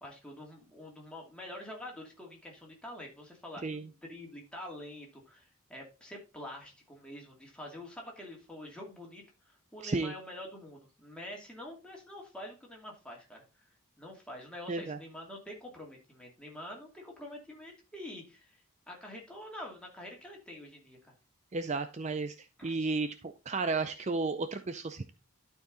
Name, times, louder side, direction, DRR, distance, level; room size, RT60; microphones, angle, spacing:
voice 1, 0.0-13.7 14.0-21.1 22.6-22.9, left 1 dB, 5° left, -1 dB, 2.5 m, -46 dB
voice 2, 9.8-10.1 14.7-15.0 21.5-22.3 22.6-25.1, right 3 dB, 30° right, 9 dB, 0.5 m, -33 dB
12.0 x 4.7 x 3.9 m, 0.31 s
head